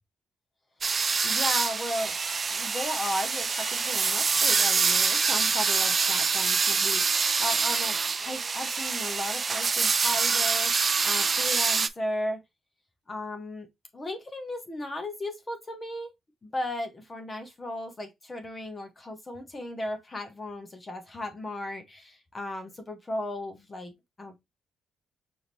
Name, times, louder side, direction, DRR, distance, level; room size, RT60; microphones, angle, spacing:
sound 1, 0.8-11.9, right 5 dB, 35° right, 0.3 m, -25 dB
voice 1, 1.2-2.2 2.5-12.4 13.1-13.7 13.9-16.1 16.4-23.9 24.2-24.4, left 1 dB, 25° left, 0.9 m, -35 dB
4.9 x 2.6 x 3.0 m
cardioid pair, 90°, 0 cm